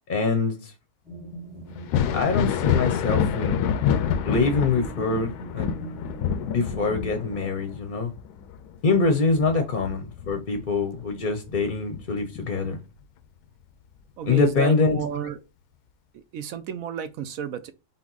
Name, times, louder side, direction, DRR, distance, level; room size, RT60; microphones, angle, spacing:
voice 1, 0.1-0.7 2.1-3.6 4.2-6.0 6.5-8.1 8.8-12.8 14.2-15.0, left 4 dB, 45° left, 0.7 m, -24 dB
sound 1, 1.0-7.5, right 1 dB, 5° right, 0.7 m, -40 dB
Thunder, 1.8-11.1 11.5-12.7 14.3-14.4 15.1-15.3, left 9 dB, 85° left, 1.1 m, -27 dB
voice 2, 14.2-15.4 16.1-17.7, right 7 dB, 70° right, 1.0 m, -32 dB
5.8 x 2.2 x 3.9 m
omnidirectional pair, 1.6 m